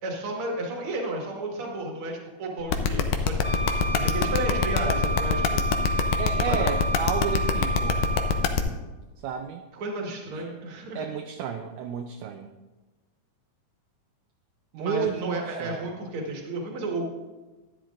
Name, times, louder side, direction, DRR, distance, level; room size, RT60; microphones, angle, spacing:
voice 1, 0.0-5.7 6.5-6.8 9.7-11.0 14.8-17.1, right 2 dB, 50° right, 0 dB, 2.2 m, -32 dB
sound 1, 2.7-8.6, left 7 dB, 80° left, 2.1 m, -23 dB
Wind instrument woodwind instrument, 3.4-8.6, right 2 dB, 25° right, 1.3 m, -30 dB
voice 2, 6.2-8.1 9.2-9.6 10.3-10.4 11.0-12.5 14.7-15.9, right 8 dB, 80° right, 5 dB, 1.9 m, -32 dB
13.0 x 10.0 x 2.5 m, 1.2 s
omnidirectional pair, 3.8 m